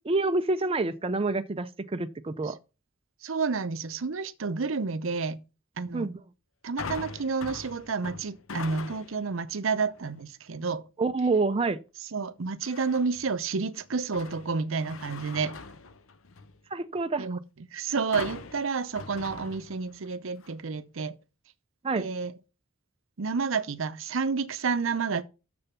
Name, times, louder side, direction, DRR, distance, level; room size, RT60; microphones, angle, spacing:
voice 1, 0.0-2.6 5.9-6.2 11.0-11.8 16.7-17.4 21.8-22.1, right 3 dB, 30° right, 0.5 m, -27 dB
voice 2, 3.2-5.4 5.8-6.1 6.6-10.8 12.1-15.6 17.2-17.4 17.7-21.2 22.0-22.3 23.2-25.2, right 4 dB, 70° right, 0.7 m, -30 dB
sound 1, 6.8-9.3 9.8-10.2 12.6-13.3 13.8-16.6 18.1-20.1 20.4-20.5, left 4 dB, 75° left, 0.8 m, -42 dB
7.0 x 6.8 x 5.7 m
head